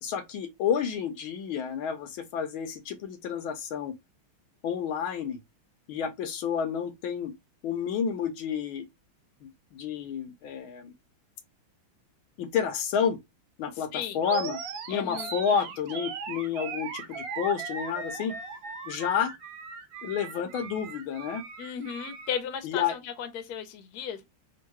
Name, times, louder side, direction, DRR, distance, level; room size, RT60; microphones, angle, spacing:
voice 1, 0.0-3.9 4.6-5.4 5.9-7.3 7.6-8.9 9.4-10.9 12.4-13.2 13.6-14.6 14.9-18.4 18.9-19.3 20.0-21.4 22.6-23.0, left 7 dB, 80° left, 1.5 m, -30 dB
Animal, 14.2-22.4, right 5 dB, 75° right, 1.4 m, -38 dB
voice 2, 14.9-15.3 21.6-24.2, left 8 dB, 60° left, 1.2 m, -35 dB
3.6 x 2.7 x 4.5 m
omnidirectional pair, 2.3 m